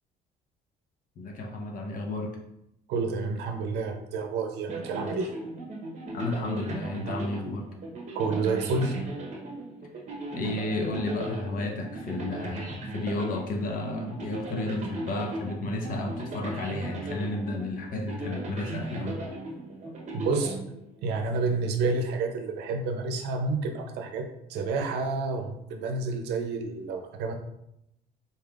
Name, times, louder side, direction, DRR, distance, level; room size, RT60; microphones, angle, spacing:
voice 1, 1.2-2.4 6.1-7.7 10.3-19.2, left 2 dB, 55° left, 2 dB, 0.7 m, -32 dB
voice 2, 2.9-5.3 8.1-9.0 20.1-20.6 21.0-27.3, right 3 dB, 80° right, 5 dB, 0.6 m, -29 dB
sound 1, 4.7-21.3, right 1 dB, 45° right, 0.9 m, -37 dB
4.0 x 3.5 x 2.4 m, 0.81 s
cardioid pair, 110°, 17 cm